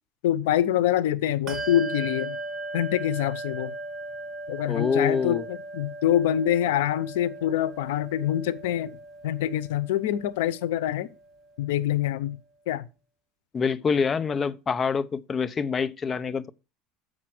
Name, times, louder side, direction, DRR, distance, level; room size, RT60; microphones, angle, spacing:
voice 1, 0.2-2.4 2.7-3.8 4.5-9.0 9.2-11.1 11.6-12.4 12.7-12.9, left 11 dB, 90° left, 0.7 m, -25 dB
Bell, 1.5-11.5, right 2 dB, 35° right, 1.1 m, -38 dB
voice 2, 4.7-5.4 13.5-16.5, left 5 dB, 25° left, 0.6 m, -26 dB
7.4 x 5.6 x 6.0 m
supercardioid pair, 130°, 0 cm